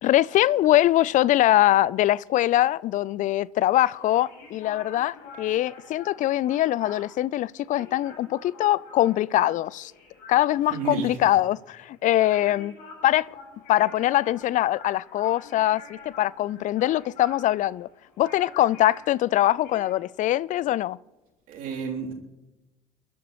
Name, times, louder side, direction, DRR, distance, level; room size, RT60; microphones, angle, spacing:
voice 1, 0.0-9.9 10.3-12.8 13.0-13.3 13.7-17.9 18.2-21.0, left 14 dB, 45° left, 0.5 m, -23 dB
sound 1, 3.8-19.9, left 3 dB, 60° left, 6.1 m, -47 dB
voice 2, 10.7-11.2 21.5-22.1, right 6 dB, 55° right, 3.3 m, -31 dB
29.5 x 12.0 x 3.1 m
figure-of-eight pair, 55°, 18 cm